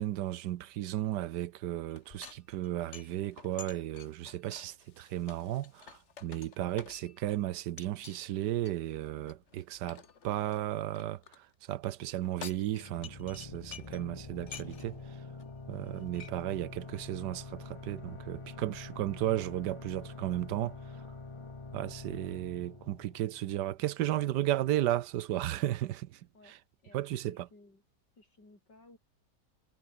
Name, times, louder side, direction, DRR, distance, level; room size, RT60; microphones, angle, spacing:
voice 1, 0.0-11.2 11.7-15.0 15.7-20.8 21.7-26.1 26.9-27.4, right 13 dB, 80° right, 1.3 m, -34 dB
sound 1, 1.9-7.3 7.8-8.2 8.6-11.4 12.1-14.1 14.4-15.0 15.4-15.5 15.7-16.3, left 6 dB, 45° left, 1.5 m, -50 dB
sound 2, 12.7-24.1, left 3 dB, 20° left, 0.9 m, -46 dB
voice 2, 26.8-27.8 28.2-29.0, left 2 dB, 80° left, 8.1 m, -59 dB
omnidirectional pair, 1.9 m